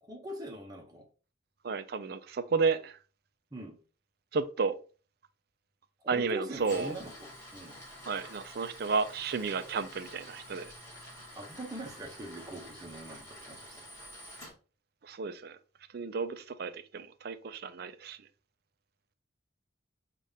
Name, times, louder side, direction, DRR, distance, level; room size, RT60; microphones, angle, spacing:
voice 1, 0.0-1.0 3.5-3.8 6.0-7.8 11.3-13.9, right 1 dB, 20° right, 0.7 m, -42 dB
voice 2, 1.6-3.0 4.3-4.8 6.1-6.9 8.1-10.7 15.0-15.6 15.9-18.2, right 4 dB, 50° right, 0.4 m, -32 dB
Tools, 6.5-14.5, equal, 15° left, 1.7 m, -49 dB
5.4 x 2.5 x 3.4 m
head